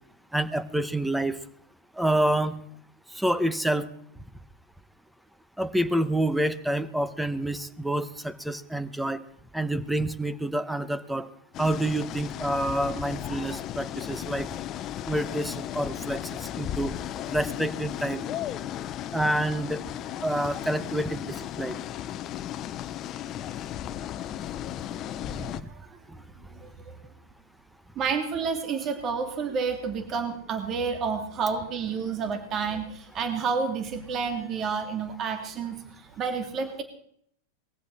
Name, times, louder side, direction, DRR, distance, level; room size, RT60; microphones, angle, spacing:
voice 1, 0.3-1.4 2.0-2.6 3.1-3.9 5.6-9.2 9.5-11.3 11.6-14.5 15.1-16.9 17.3-18.2 19.1-19.8 20.2-21.8 25.3-25.6, right 1 dB, 5° right, 14 dB, 1.2 m, -28 dB
sound 1, 11.5-25.6, left 11 dB, 40° left, 1.0 m, -35 dB
voice 2, 26.5-26.9 28.0-36.8, right 5 dB, 35° right, 6 dB, 2.4 m, -30 dB
21.0 x 15.0 x 4.3 m, 0.68 s
hypercardioid pair, 110°, 0 cm